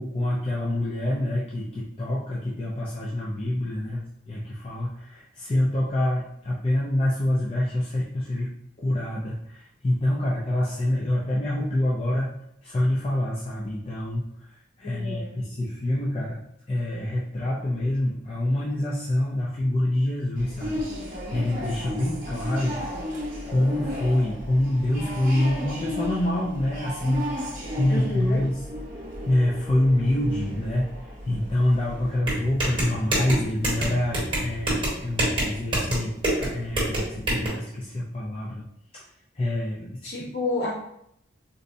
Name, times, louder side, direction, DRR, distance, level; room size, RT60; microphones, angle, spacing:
voice 1, 0.0-8.5 8.8-16.4 16.7-28.6 29.3-30.9 31.2-38.7 38.9-39.0 39.3-40.1, left 1 dB, 30° left, -5 dB, 0.4 m, -26 dB
voice 2, 14.8-15.4 27.9-28.5 40.0-40.7, left 2 dB, 55° left, -4 dB, 0.9 m, -30 dB
sound 1, 20.4-32.2, equal, 45° right, 0.7 m, -34 dB
sound 2, 32.2-37.5, right 1 dB, 25° right, 1.1 m, -26 dB
3.9 x 2.1 x 2.6 m, 0.74 s
head